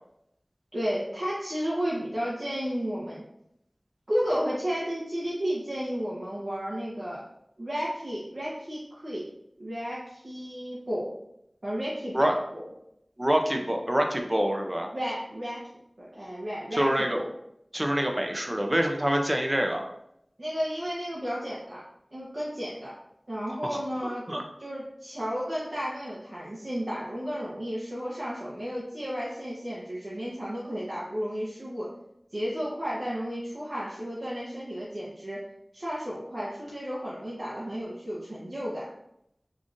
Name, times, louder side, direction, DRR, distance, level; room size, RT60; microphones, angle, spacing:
voice 1, 0.7-3.2 4.1-7.2 7.6-9.2 9.6-11.1 11.6-12.7 14.9-15.6 16.0-17.3 20.4-21.8 22.1-22.9 23.3-24.3 24.6-31.9 32.3-35.4 35.7-38.9, equal, 60° right, -8 dB, 0.9 m, -33 dB
voice 2, 13.2-14.9 16.7-17.2 17.7-19.9 23.5-23.8 24.3-24.4, equal, 25° right, 3 dB, 0.4 m, -26 dB
5.0 x 2.5 x 2.5 m, 0.77 s
wide cardioid pair, 50°, 0 cm